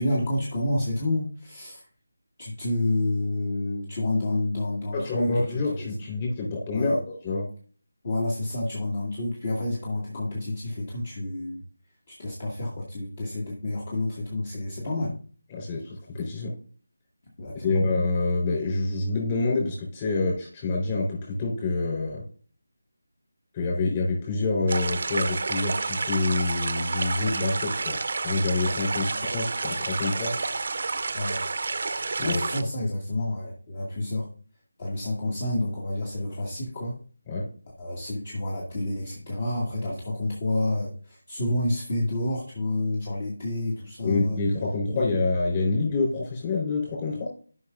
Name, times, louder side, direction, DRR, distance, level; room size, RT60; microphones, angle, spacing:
voice 1, 0.0-1.9 2.4-5.9 6.7-7.0 8.0-11.6 12.1-15.1 17.4-17.8 29.0-29.2 31.1-31.4 32.2-34.3 34.8-37.0 37.8-44.4 44.9-45.1, left 1 dB, 40° left, -3 dB, 2.0 m, -29 dB
voice 2, 4.9-7.5 15.5-16.5 17.5-22.2 23.5-28.0 28.2-30.4 32.2-32.4 37.3-37.5 44.0-47.3, left 3 dB, 25° left, -2 dB, 3.8 m, -27 dB
sound 1, 24.7-32.6, right 3 dB, 50° right, 0.7 m, -30 dB
14.0 x 5.7 x 2.5 m, 0.43 s
figure-of-eight pair, 165°, 0 cm